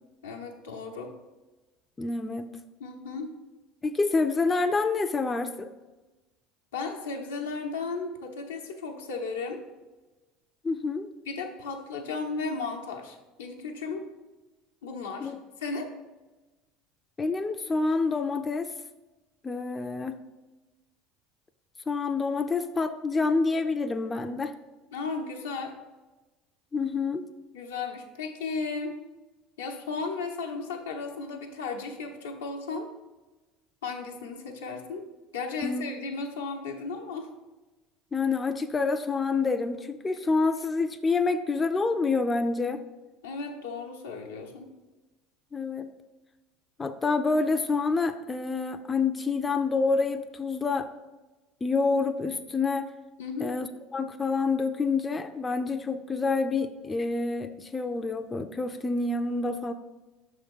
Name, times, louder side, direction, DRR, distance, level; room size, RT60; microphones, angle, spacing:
voice 1, 0.2-1.1 2.8-3.3 6.7-9.6 11.3-14.0 14.8-15.3 15.6-15.9 24.9-25.7 27.5-29.0 29.6-32.9 33.8-35.1 35.3-37.3 43.2-44.7 53.2-53.5, left 4 dB, 85° left, 2 dB, 0.8 m, -35 dB
voice 2, 2.0-2.5 3.8-5.7 10.6-11.1 15.2-15.4 17.2-18.7 19.4-20.2 21.9-24.5 26.7-27.3 35.6-35.8 38.1-42.8 45.5-45.9 46.8-50.9 51.6-52.9 53.4-59.7, left 4 dB, 25° left, 8 dB, 0.4 m, -27 dB
6.1 x 3.6 x 5.3 m, 1.2 s
hypercardioid pair, 75°, 0 cm